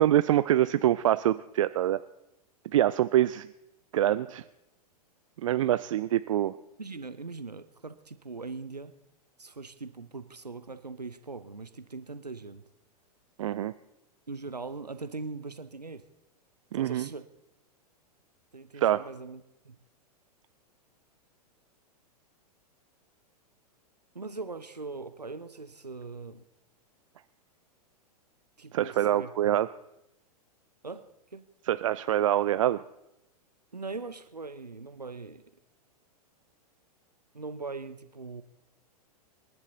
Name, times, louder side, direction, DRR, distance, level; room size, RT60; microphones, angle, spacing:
voice 1, 0.0-2.0 2.7-3.5 3.9-4.4 5.4-6.5 13.4-13.7 16.7-17.1 18.8-19.0 28.7-29.7 31.7-32.8, right 12 dB, 55° right, 14 dB, 0.4 m, -25 dB
voice 2, 6.8-8.9 9.4-12.6 14.3-16.0 16.7-17.3 18.5-19.8 24.1-26.4 28.6-29.6 30.8-31.4 33.7-35.4 37.3-38.4, right 3 dB, 85° right, 12 dB, 0.8 m, -41 dB
26.5 x 11.0 x 4.0 m, 0.86 s
figure-of-eight pair, 100°, 20 cm